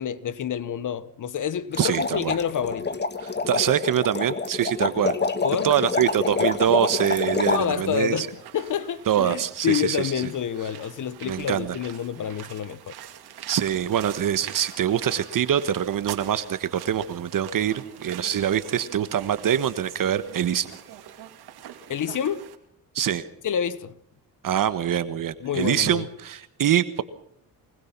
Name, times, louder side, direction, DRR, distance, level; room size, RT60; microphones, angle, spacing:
voice 1, 0.0-2.9 5.4-5.7 7.5-12.9 21.9-22.5 23.4-23.9 25.4-26.0, left 8 dB, 55° left, 1.1 m, -28 dB
sound 1, 1.7-7.6, left 4 dB, 30° left, 1.4 m, -27 dB
voice 2, 1.8-2.4 3.2-5.1 5.6-8.3 9.1-10.3 11.2-11.8 13.5-20.7 22.9-23.3 24.4-27.0, right 9 dB, 60° right, 1.3 m, -24 dB
sound 2, 6.9-22.5, right 11 dB, 85° right, 2.5 m, -44 dB
24.0 x 21.0 x 6.0 m
cardioid pair, 110°, 37 cm